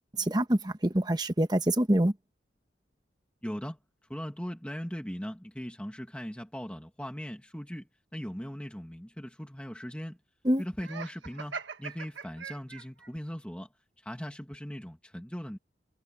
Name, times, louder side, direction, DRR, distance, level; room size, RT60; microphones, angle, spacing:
voice 1, 0.2-2.1 10.4-10.6, right 1 dB, 20° right, 1.2 m, -25 dB
voice 2, 3.4-3.8 4.1-10.2 10.6-13.7 14.0-15.6, equal, 5° left, 1.9 m, -39 dB
Laughter, 10.8-13.1, right 6 dB, 85° right, 1.3 m, -41 dB
head